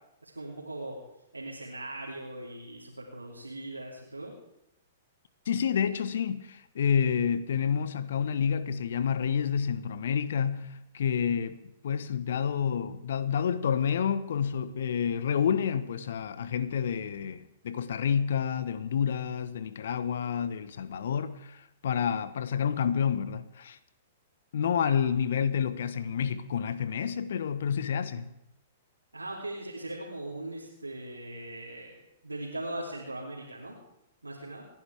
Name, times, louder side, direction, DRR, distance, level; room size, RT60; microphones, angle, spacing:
voice 1, 0.2-1.0 1.3-4.3 29.1-33.8 34.2-34.6, right 1 dB, 85° right, 2.9 m, -39 dB
voice 2, 5.5-23.8 24.5-28.3, left 7 dB, 60° left, 1.0 m, -29 dB
28.5 x 10.5 x 3.5 m
figure-of-eight pair, 110°, 0 cm